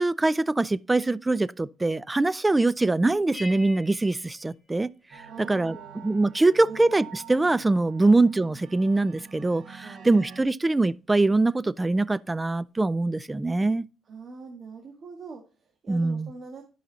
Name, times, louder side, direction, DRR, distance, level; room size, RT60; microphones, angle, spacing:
voice 1, 0.0-4.9 5.4-5.8 6.0-13.9 15.9-16.3, right 2 dB, 15° right, 0.4 m, -23 dB
sound 1, 3.3-5.5, left 2 dB, ahead, 2.0 m, -45 dB
sound 2, 5.1-10.4, right 8 dB, 80° right, 2.2 m, -46 dB
voice 2, 5.3-6.8 7.3-7.4 8.0-8.2 9.8-10.4 14.0-16.6, right 4 dB, 50° right, 1.7 m, -44 dB
11.0 x 5.7 x 4.0 m
cardioid pair, 90°, 0 cm